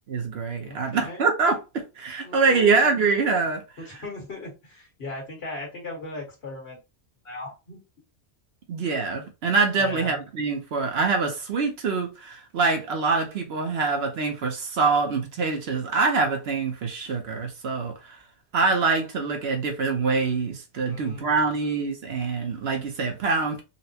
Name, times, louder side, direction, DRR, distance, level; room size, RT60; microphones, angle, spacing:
voice 1, 0.1-3.6 8.7-18.2 18.5-23.6, right 4 dB, 65° right, 0.9 m, -25 dB
voice 2, 0.7-1.3 2.2-2.9 3.8-6.8 7.2-7.8 9.8-10.2 20.9-21.5, left 2 dB, 60° left, 1.7 m, -38 dB
4.1 x 2.1 x 2.8 m
omnidirectional pair, 1.2 m